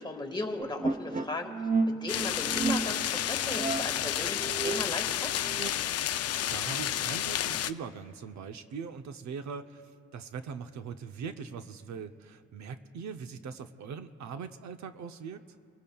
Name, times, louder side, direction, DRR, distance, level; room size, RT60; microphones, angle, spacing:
voice 1, 0.0-5.3, left 2 dB, 15° left, 2 dB, 1.6 m, -37 dB
sound 1, 0.6-5.7, right 3 dB, 25° right, 0.6 m, -32 dB
sound 2, 2.1-7.7, left 11 dB, 55° left, 0.5 m, -31 dB
voice 2, 6.5-15.4, right 6 dB, 65° right, 9 dB, 0.7 m, -41 dB
25.5 x 16.5 x 2.3 m, 2.4 s
cardioid pair, 90°, 30 cm